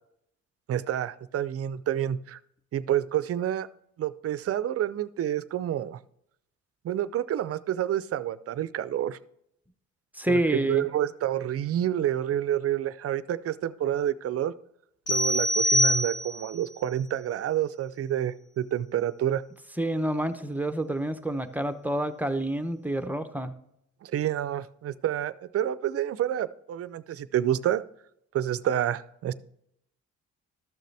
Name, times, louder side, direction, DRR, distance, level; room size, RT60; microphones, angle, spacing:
voice 1, 0.7-2.4 2.7-3.7 4.0-6.0 6.8-9.2 10.3-14.5 15.1-19.4 24.0-27.8 28.3-29.3, right 11 dB, 50° right, 16 dB, 0.5 m, -28 dB
voice 2, 10.1-10.9 19.8-23.5, right 1 dB, 5° right, 9 dB, 0.7 m, -28 dB
sound 1, 15.1-16.6, equal, 55° left, 2.2 m, -24 dB
13.0 x 6.6 x 3.3 m, 0.75 s
cardioid pair, 90°, 30 cm